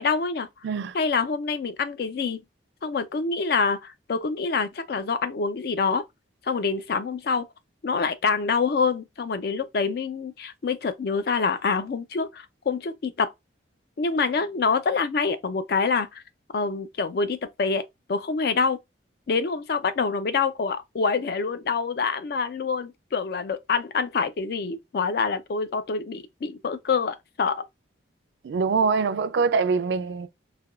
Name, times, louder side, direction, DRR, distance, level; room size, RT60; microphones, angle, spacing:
voice 1, 0.0-0.5 0.9-2.4 2.8-6.0 6.4-7.5 7.8-13.3 14.0-16.2 16.5-17.8 18.1-18.8 19.3-27.6, left 4 dB, 55° left, 0.4 m, -26 dB
voice 2, 0.6-1.0 28.4-30.3, right 5 dB, 70° right, 0.3 m, -24 dB
3.3 x 2.2 x 2.3 m
head